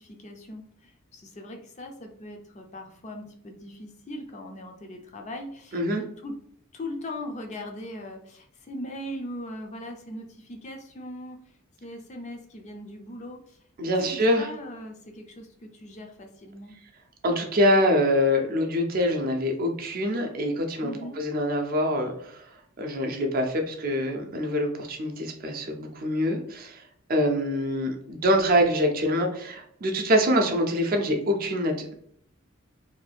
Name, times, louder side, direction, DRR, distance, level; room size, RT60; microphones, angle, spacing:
voice 1, 0.0-6.4 6.7-11.4 11.8-13.6 13.8-16.7 20.8-21.2, left 1 dB, 35° left, 3 dB, 0.4 m, -40 dB
voice 2, 5.7-6.0 13.8-14.5 17.2-22.5 22.8-26.8 27.1-31.9, equal, 45° right, 4 dB, 0.5 m, -25 dB
2.6 x 2.3 x 3.3 m, 0.65 s
head